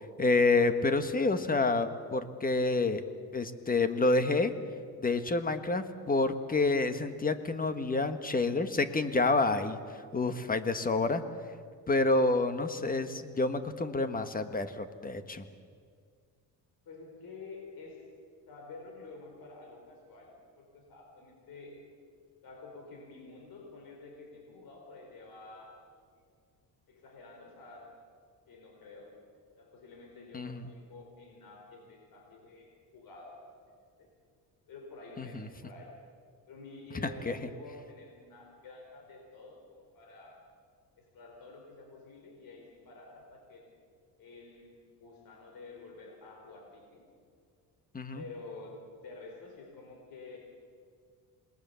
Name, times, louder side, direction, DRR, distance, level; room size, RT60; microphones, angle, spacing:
voice 1, 0.2-3.0 3.3-4.5 5.0-9.8 10.1-11.2 11.9-15.4 30.3-30.6 35.2-35.5 37.3-37.4 47.9-48.2, left 3 dB, 20° left, 9 dB, 1.5 m, -28 dB
voice 2, 16.9-18.1 18.5-21.8 22.4-25.8 26.9-28.0 28.5-29.2 29.6-33.4 33.7-34.1 34.7-36.0 36.5-40.4 41.0-43.6 44.2-47.0 48.1-50.4, left 3 dB, 60° left, 1 dB, 4.6 m, -49 dB
27.5 x 20.5 x 7.1 m, 2.1 s
cardioid pair, 125°, 39 cm